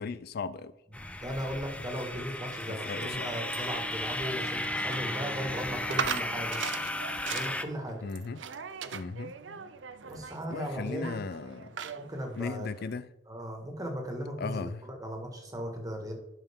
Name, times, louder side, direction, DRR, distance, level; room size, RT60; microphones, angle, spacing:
voice 1, 0.0-0.7 2.9-3.3 8.0-8.4 8.9-9.3 10.5-11.7 12.4-13.1 14.4-14.8, left 4 dB, 55° left, 0.4 m, -36 dB
sound 1, 0.9-7.7, left 1 dB, 5° left, 0.5 m, -35 dB
voice 2, 0.9-6.6 7.3-8.1 10.0-11.3 12.0-12.7 13.3-16.1, equal, 20° right, 1.8 m, -37 dB
sound 2, 2.0-13.0, right 7 dB, 75° right, 0.6 m, -41 dB
11.5 x 5.6 x 3.7 m
head